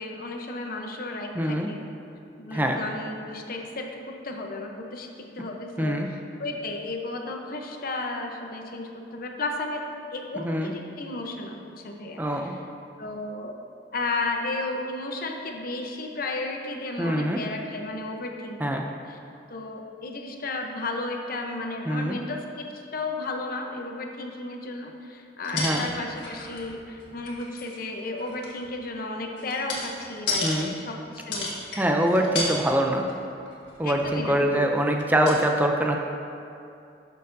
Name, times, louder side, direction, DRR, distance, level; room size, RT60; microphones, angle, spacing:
voice 1, 0.0-1.8 2.4-9.8 10.1-12.6 13.0-13.6 13.9-19.2 19.5-31.8 32.2-32.5 33.8-34.7, left 2 dB, 55° left, 2 dB, 0.8 m, -34 dB
voice 2, 1.4-1.7 2.5-2.8 5.8-6.1 10.4-10.7 12.2-12.5 17.0-17.4 18.6-18.9 21.9-22.2 25.5-25.9 30.4-30.7 31.8-33.1 33.8-36.0, right 1 dB, 10° right, 2 dB, 0.4 m, -24 dB
sound 1, 25.4-26.7 27.0-27.8 28.2-30.6 31.2-31.8 32.1-32.6 32.9-33.1 33.5-34.2 35.0-35.1 35.3-35.4, left 3 dB, 75° left, 1.6 m, -32 dB
11.5 x 6.6 x 2.6 m, 2.6 s
head